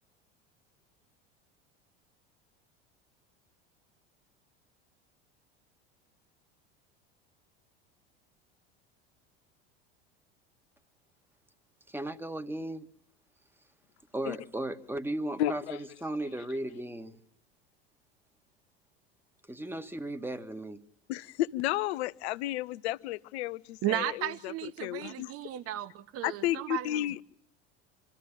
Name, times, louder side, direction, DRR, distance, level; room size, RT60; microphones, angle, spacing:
voice 1, 11.9-12.9 14.1-15.6 16.0-17.2 19.5-20.8, right 1 dB, 5° right, 1.7 m, -35 dB
voice 2, 15.4-15.8 21.1-25.3 26.2-27.2, left 14 dB, 70° left, 0.9 m, -32 dB
voice 3, 23.8-27.2, right 13 dB, 45° right, 1.1 m, -35 dB
26.0 x 14.5 x 8.7 m
hypercardioid pair, 80°, 33 cm